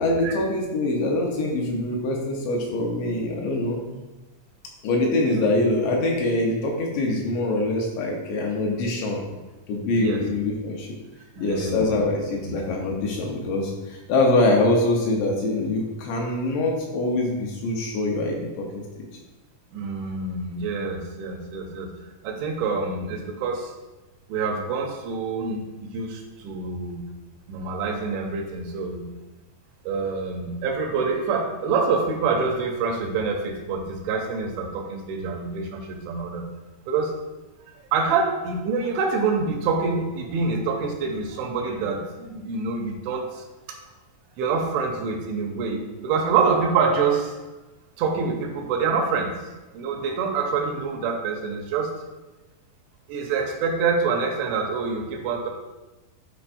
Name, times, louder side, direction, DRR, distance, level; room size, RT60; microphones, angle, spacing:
voice 1, 0.0-3.8 4.8-9.2 9.7-10.9 11.4-19.1, left 2 dB, 75° left, -1 dB, 2.9 m, -24 dB
voice 2, 11.4-12.1 12.5-12.6 19.7-21.9 22.2-23.7 24.3-27.0 27.5-29.1 29.9-36.5 36.9-37.1 37.9-43.8 44.4-47.4 48.0-49.5 49.7-51.9 53.1-55.5, right 4 dB, 80° right, 2 dB, 2.9 m, -26 dB
11.5 x 4.7 x 2.6 m, 1.1 s
omnidirectional pair, 5.7 m